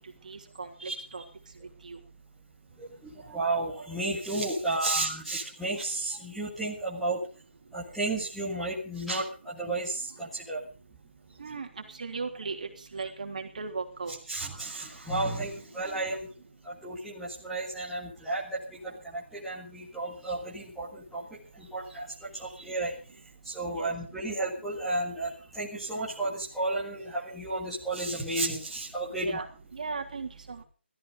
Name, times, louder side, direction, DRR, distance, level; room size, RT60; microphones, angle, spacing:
voice 1, 0.2-1.2 1.8-2.0 11.4-11.7 12.0-14.2 23.8-23.9 29.2-29.5 29.7-30.6, right 4 dB, 40° right, 3 dB, 3.2 m, -37 dB
voice 2, 2.8-7.2 7.7-10.6 14.3-16.3 16.6-21.2 21.6-22.9 23.4-29.4, right 2 dB, ahead, -11 dB, 1.8 m, -33 dB
16.0 x 13.5 x 5.1 m, 0.36 s
hypercardioid pair, 175°, 6 cm